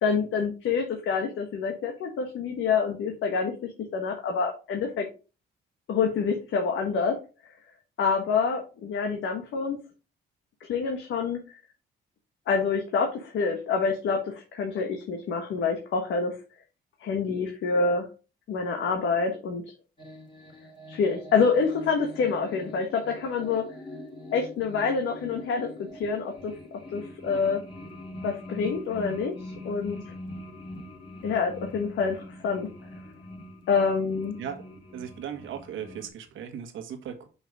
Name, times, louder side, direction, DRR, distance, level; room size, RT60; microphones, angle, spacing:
voice 1, 0.0-5.1 5.9-7.2 8.0-9.8 10.6-11.4 12.5-16.3 17.0-18.1 18.5-19.6 20.9-23.6 24.3-26.5 26.9-27.6 28.2-29.3 29.6-30.1 31.2-32.7 33.7-34.3, left 5 dB, 75° left, 1.4 m, -27 dB
sound 1, 20.0-36.1, left 1 dB, 25° left, 2.6 m, -43 dB
voice 2, 34.9-37.3, right 8 dB, 80° right, 1.6 m, -37 dB
5.9 x 5.5 x 4.8 m
cardioid pair, 90°, 20 cm